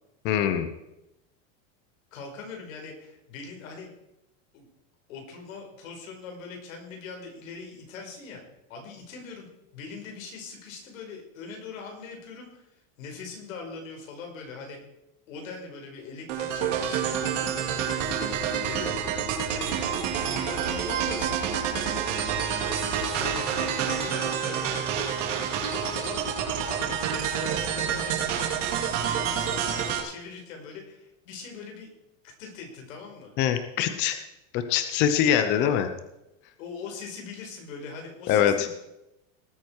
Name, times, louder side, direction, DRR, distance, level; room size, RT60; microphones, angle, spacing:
voice 1, 0.2-0.7 33.4-34.2 34.5-35.9 38.3-38.7, left 9 dB, 30° left, 9 dB, 0.7 m, -23 dB
voice 2, 2.1-3.9 4.5-4.6 5.1-8.4 8.7-14.8 15.3-18.1 18.6-18.9 19.5-19.8 20.1-21.4 21.7-22.4 22.8-24.9 25.9-26.2 26.6-28.2 29.0-31.9 32.2-33.3 36.6-38.7, left 4 dB, 85° left, 2 dB, 5.0 m, -41 dB
sound 1, 16.3-30.0, right 7 dB, 65° right, 3.1 m, -28 dB
18.5 x 9.2 x 4.7 m, 0.90 s
supercardioid pair, 175°, 39 cm